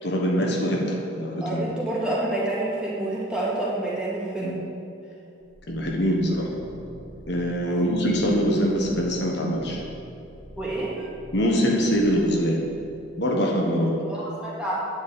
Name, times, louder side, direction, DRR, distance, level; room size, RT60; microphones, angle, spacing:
voice 1, 0.0-1.7 4.4-4.6 5.7-6.5 7.3-9.8 11.3-12.6 13.2-14.0, equal, 60° left, -1 dB, 1.3 m, -23 dB
voice 2, 1.4-4.6 7.6-7.9 10.6-11.1 14.1-14.8, right 2 dB, 5° right, -7 dB, 2.2 m, -28 dB
sound 1, 5.4-13.2, right 1 dB, 25° left, 2.8 m, -46 dB
9.9 x 5.3 x 8.2 m, 2.7 s
head